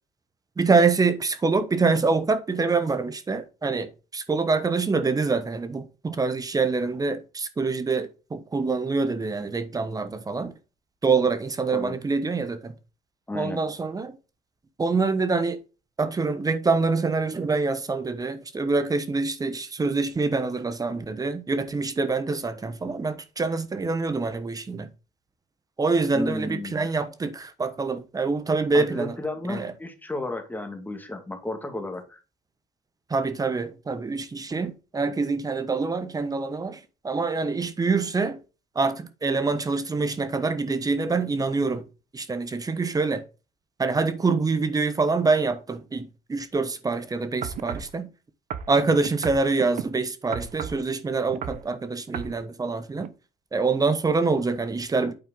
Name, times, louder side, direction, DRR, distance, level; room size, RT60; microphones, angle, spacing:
voice 1, 0.6-10.5 11.0-12.7 13.3-14.2 14.8-15.6 16.0-24.9 25.8-29.2 29.5-29.7 33.1-38.4 38.7-41.8 42.1-43.2 43.8-48.1 48.7-53.1 53.5-55.1, right 4 dB, 25° right, 1.2 m, -25 dB
voice 2, 13.3-13.6 26.1-26.9 28.7-32.2, left 2 dB, 10° left, 1.8 m, -33 dB
sound 1, 47.4-47.9 48.5-49.9 50.3-50.8 51.3-51.7 52.1-52.4 53.0-53.1, right 8 dB, 60° right, 0.8 m, -33 dB
8.9 x 4.4 x 3.8 m
supercardioid pair, 85°, 15 cm